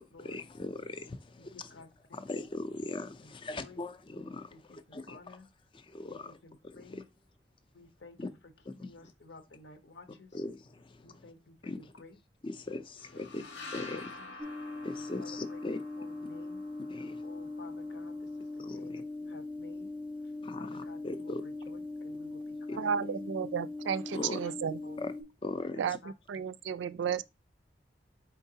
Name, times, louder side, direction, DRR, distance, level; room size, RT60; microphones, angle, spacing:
voice 1, 0.0-1.8 2.1-5.4 5.7-6.4 6.6-7.0 8.2-8.3 8.6-9.1 10.1-11.3 11.6-11.9 12.4-13.4 13.7-14.2 14.8-15.8 16.2-16.3 16.9-17.2 18.6-19.0 20.4-21.4 22.7-22.8 24.1-24.4 25.0-25.1 25.4-26.0, left 2 dB, 30° left, 0.5 m, -40 dB
voice 2, 1.4-2.3 3.5-3.8 4.5-5.5 6.1-7.0 7.7-8.3 8.8-10.4 11.0-12.1 13.1-14.0 15.2-15.6 16.0-16.6 17.2-19.9 20.6-23.2 24.1-24.5 24.8-25.1 25.7-26.5, left 2 dB, 70° left, 0.9 m, -53 dB
sound 1, 13.0-18.6, left 3 dB, 85° left, 1.4 m, -49 dB
sound 2, 14.4-25.2, left 2 dB, 25° right, 0.5 m, -40 dB
voice 3, 22.8-24.8 25.8-26.0 26.3-27.2, right 7 dB, 80° right, 0.3 m, -33 dB
4.5 x 3.8 x 2.8 m
head